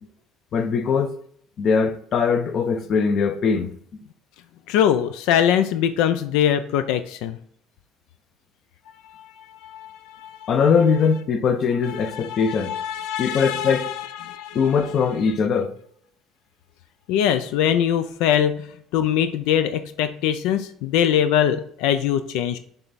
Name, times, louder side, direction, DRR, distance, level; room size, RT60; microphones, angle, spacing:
voice 1, 0.5-1.1 1.6-3.7 10.5-12.7 13.2-13.9 14.5-15.7, left 6 dB, 45° left, 0.7 m, -21 dB
voice 2, 4.7-7.4 9.2-9.3 9.6-10.5 12.0-14.6 17.1-18.6 18.9-22.6, left 9 dB, 85° left, 0.4 m, -22 dB
6.9 x 3.4 x 4.1 m
cardioid pair, 130°, 0 cm